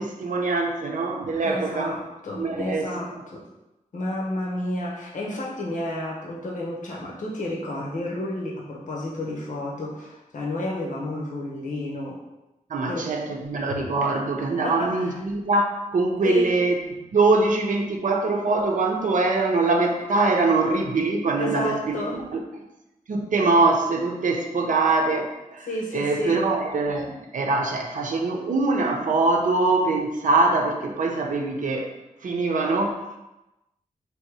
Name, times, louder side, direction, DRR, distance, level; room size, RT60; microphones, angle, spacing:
voice 1, 0.0-2.0 2.4-2.9 12.7-16.7 17.1-22.0 22.3-22.4 23.1-25.7 25.9-31.9 32.2-33.2, right 3 dB, 65° right, 1 dB, 0.6 m, -23 dB
voice 2, 1.4-3.4 3.9-12.2 12.9-13.1 14.6-15.1 16.2-16.5 21.4-22.3 25.7-26.4, left 1 dB, 65° left, -3 dB, 0.9 m, -31 dB
3.5 x 2.8 x 4.6 m, 0.98 s
wide cardioid pair, 140°, 14 cm